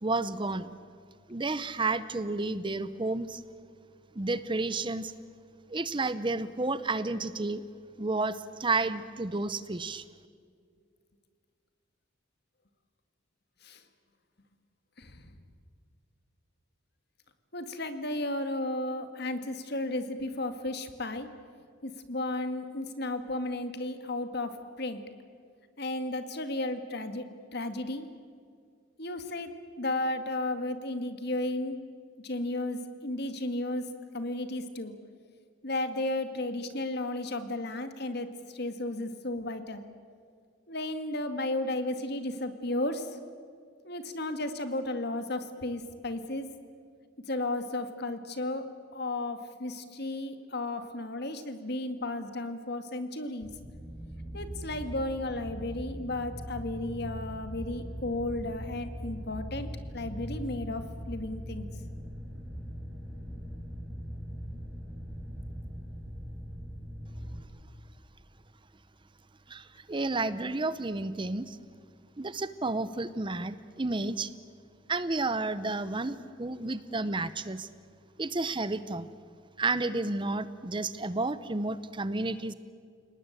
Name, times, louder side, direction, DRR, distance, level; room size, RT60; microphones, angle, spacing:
voice 1, 0.0-0.7 1.3-3.4 4.1-5.1 5.7-7.6 8.0-10.0 69.5-71.6 72.2-74.3 74.9-77.7 78.2-79.1 79.6-82.5, right 3 dB, 25° right, 14 dB, 0.7 m, -31 dB
voice 2, 15.0-15.3 17.5-21.3 21.8-25.0 25.8-28.1 29.0-31.8 32.2-35.0 35.6-39.8 40.7-43.2 43.8-46.5 47.3-53.5 54.3-61.7, left 2 dB, 55° left, 9 dB, 2.0 m, -34 dB
sound 1, 53.4-67.4, equal, 5° left, 4.3 m, -40 dB
29.5 x 19.0 x 9.0 m, 2.2 s
head